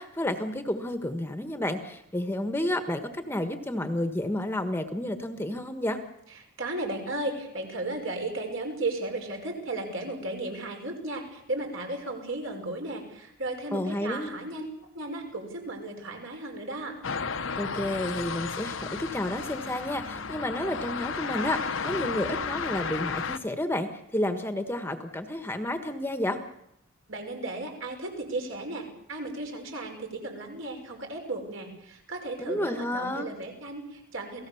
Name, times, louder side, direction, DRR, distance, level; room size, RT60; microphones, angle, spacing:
voice 1, 0.0-6.0 13.7-14.3 17.6-26.4 32.4-33.3, left 1 dB, 10° left, 8 dB, 1.4 m, -31 dB
voice 2, 6.6-14.7 14.9-17.0 27.1-34.5, right 2 dB, 60° right, 3 dB, 5.6 m, -35 dB
sound 1, 17.0-23.4, left 5 dB, 60° left, 1.1 m, -33 dB
28.5 x 18.0 x 7.1 m, 0.79 s
head